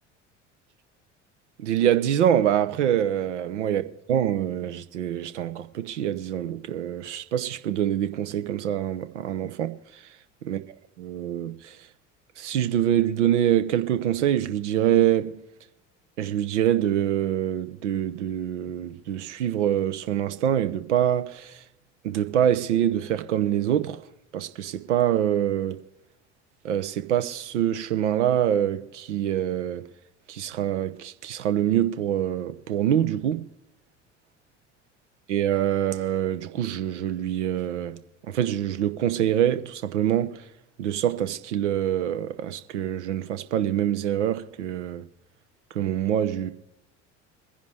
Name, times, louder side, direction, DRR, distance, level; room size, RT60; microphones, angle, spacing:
voice 1, 1.6-9.7 10.4-10.6 11.0-11.8 12.4-15.3 16.2-21.5 22.0-24.0 24.3-25.8 26.6-29.9 30.3-33.4 35.3-38.0 38.3-40.4 40.8-45.0 45.7-46.5, right 10 dB, 70° right, 1.0 m, -25 dB
23.5 x 10.5 x 3.4 m
figure-of-eight pair, 65°, 37 cm